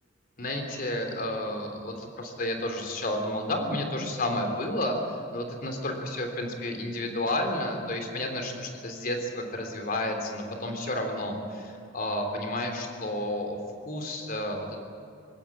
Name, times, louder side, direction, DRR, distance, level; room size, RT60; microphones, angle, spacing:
voice 1, 0.4-5.0 5.3-14.8, left 1 dB, 50° left, 4 dB, 3.5 m, -31 dB
20.0 x 16.5 x 8.6 m, 2.6 s
head